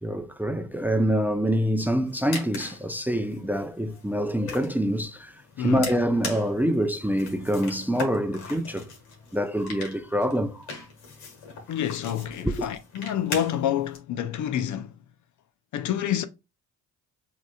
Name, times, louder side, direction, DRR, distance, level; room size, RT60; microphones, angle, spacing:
voice 1, 0.0-8.9 9.3-10.8 12.4-12.7, equal, 5° right, 0.5 m, -26 dB
sound 1, 2.0-14.0, left 4 dB, 80° left, 1.8 m, -41 dB
voice 2, 5.6-5.9 11.7-14.9 15.7-16.2, left 10 dB, 55° left, 0.6 m, -28 dB
5.8 x 3.0 x 2.3 m
supercardioid pair, 70°, 36 cm